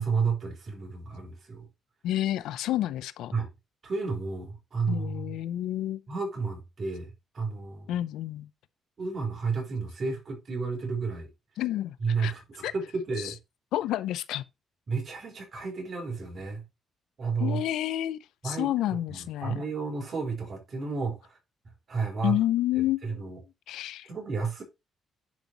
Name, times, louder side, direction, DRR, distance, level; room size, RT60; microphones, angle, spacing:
voice 1, 0.0-1.7 3.3-3.5 3.8-5.4 6.1-7.9 9.0-11.3 12.0-13.4 14.9-16.6 17.2-17.6 18.4-21.4 21.9-22.4 22.8-23.4 24.1-24.6, right 4 dB, 45° right, 4.2 m, -32 dB
voice 2, 2.0-3.3 4.9-6.0 7.9-8.5 11.6-12.3 12.6-12.7 13.2-13.3 13.7-14.4 17.4-18.2 18.4-19.6 22.2-23.3 23.7-24.1, left 13 dB, 85° left, 0.5 m, -29 dB
10.5 x 5.3 x 2.9 m
cardioid pair, 90°, 0 cm